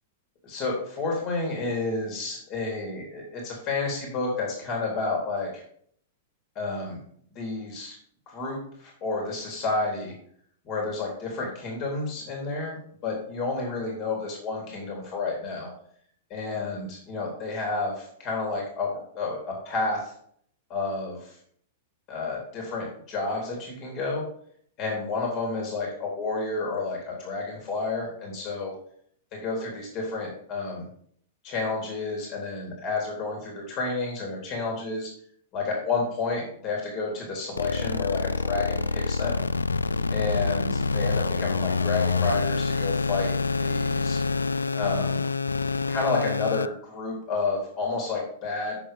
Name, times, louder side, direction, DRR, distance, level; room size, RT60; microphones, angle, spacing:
voice 1, 0.4-5.6 6.6-7.0 7.4-8.0 8.3-10.1 10.7-15.7 16.3-20.1 20.7-21.4 22.1-24.2 24.8-28.7 29.3-30.9 31.4-35.1 35.5-39.4 40.1-43.3 43.6-44.2 44.7-45.3 45.9-48.8, left 3 dB, 40° left, -1 dB, 3.6 m, -30 dB
sound 1, 37.6-46.7, left 4 dB, 80° left, 0.4 m, -26 dB
8.3 x 7.1 x 5.4 m, 0.63 s
figure-of-eight pair, 100°, 0 cm